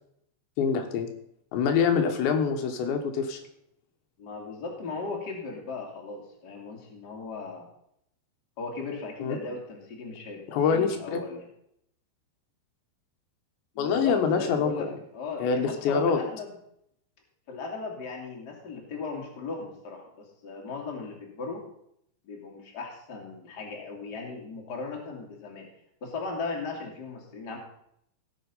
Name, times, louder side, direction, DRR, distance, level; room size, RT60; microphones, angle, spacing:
voice 1, 0.6-1.1 1.5-3.4 9.2-9.5 10.5-11.2 13.8-15.0 15.4-16.2, left 6 dB, 80° left, 4 dB, 3.5 m, -25 dB
voice 2, 4.2-7.7 8.6-11.5 13.7-14.9 15.1-16.6 17.5-21.6 22.2-25.7 26.0-27.6, left 4 dB, 30° left, 0 dB, 2.2 m, -37 dB
17.0 x 7.0 x 5.5 m, 0.72 s
omnidirectional pair, 5.1 m